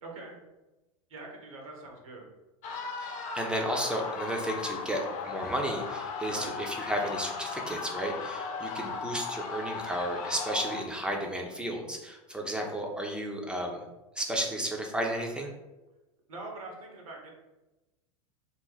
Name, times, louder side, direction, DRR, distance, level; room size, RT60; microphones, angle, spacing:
voice 1, 0.0-0.4 1.1-2.3 6.3-6.5 9.0-9.2 16.3-17.3, right 2 dB, 80° right, 0 dB, 1.2 m, -43 dB
sound 1, 2.6-10.8, left 5 dB, 45° left, 0.6 m, -37 dB
voice 2, 3.0-13.8 14.2-15.5, right 1 dB, 5° right, 0 dB, 0.7 m, -33 dB
4.0 x 2.1 x 4.0 m, 1.0 s
hypercardioid pair, 90°, 17 cm